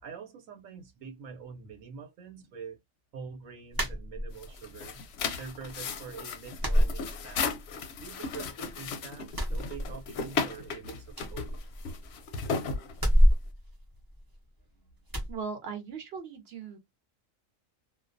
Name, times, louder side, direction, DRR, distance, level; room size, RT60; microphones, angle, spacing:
voice 1, 0.0-2.8 3.1-5.0 5.3-7.5 8.0-11.6, right 6 dB, 80° right, 1.1 m, -45 dB
sound 1, 3.7-4.6 5.0-5.7 6.0-6.1 6.6-7.7 8.0-8.8 9.2-10.4 10.7-10.8 11.1-12.3 12.9-14.6 15.1-15.4, equal, 30° right, 0.4 m, -27 dB
sound 2, 4.3-13.5, left 5 dB, 65° left, 0.7 m, -35 dB
voice 2, 15.3-16.8, right 5 dB, 55° right, 0.9 m, -38 dB
2.3 x 2.2 x 2.5 m
omnidirectional pair, 1.4 m